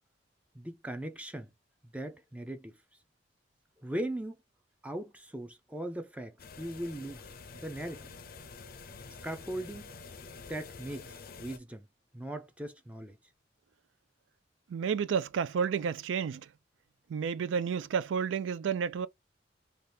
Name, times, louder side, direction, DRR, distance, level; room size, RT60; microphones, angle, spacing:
voice 1, 0.5-1.5 1.9-2.7 3.8-4.4 4.8-7.3 7.5-8.1 9.2-9.9 10.5-11.9 12.1-13.2, right 1 dB, 5° right, 0.4 m, -39 dB
sound 1, 6.4-11.6, left 4 dB, 55° left, 0.5 m, -48 dB
voice 2, 14.7-16.5 17.1-19.1, right 6 dB, 90° right, 0.3 m, -31 dB
2.7 x 2.3 x 3.3 m
head